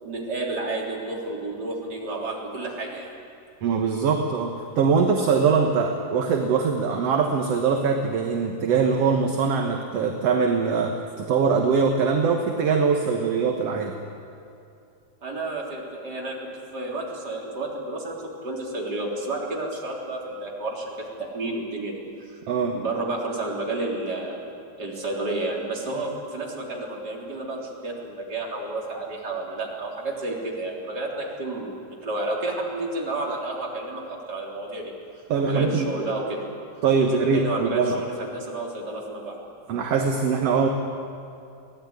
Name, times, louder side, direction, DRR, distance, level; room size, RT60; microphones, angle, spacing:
voice 1, 0.0-3.1 15.2-16.4 16.7-22.4 22.7-24.4 24.8-34.9 35.4-36.4 37.0-39.4, right 2 dB, 30° right, -2 dB, 4.1 m, -31 dB
voice 2, 3.6-14.0 22.5-22.8 35.3-35.9 36.8-38.0 39.7-40.7, right 5 dB, 60° right, 3 dB, 2.2 m, -22 dB
23.5 x 17.0 x 9.7 m, 2.6 s
omnidirectional pair, 3.5 m